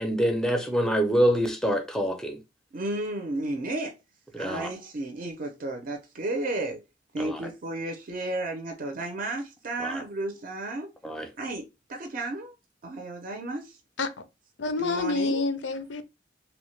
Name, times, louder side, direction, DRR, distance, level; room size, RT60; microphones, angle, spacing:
voice 1, 0.0-2.4 4.3-4.7 7.2-7.4 9.8-10.0 11.0-11.3, equal, 5° left, 0.5 m, -26 dB
voice 2, 2.7-3.9 4.3-6.8 7.1-10.9 11.4-12.5 12.8-13.8 14.8-15.4, right 2 dB, 50° right, 0.5 m, -33 dB
voice 3, 14.6-16.0, left 3 dB, 75° left, 0.5 m, -28 dB
3.0 x 2.1 x 3.1 m
head